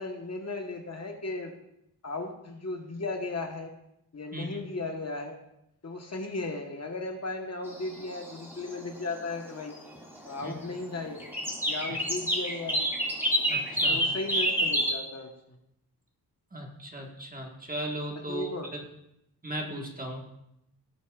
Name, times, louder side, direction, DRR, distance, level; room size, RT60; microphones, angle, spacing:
voice 1, 0.0-1.5 2.0-3.7 4.1-5.4 5.8-9.7 10.2-11.2 11.7-12.9 13.9-15.6 18.3-18.7, left 2 dB, 40° left, 3 dB, 1.2 m, -36 dB
sound 1, 7.7-8.8 9.2-9.5 9.7-10.6 11.0-14.9, equal, 5° right, 2.1 m, -28 dB
voice 2, 13.5-14.0 16.5-18.5 19.4-20.2, right 1 dB, 20° right, 1 dB, 1.5 m, -37 dB
17.5 x 8.2 x 2.4 m, 0.81 s
wide cardioid pair, 125°, 38 cm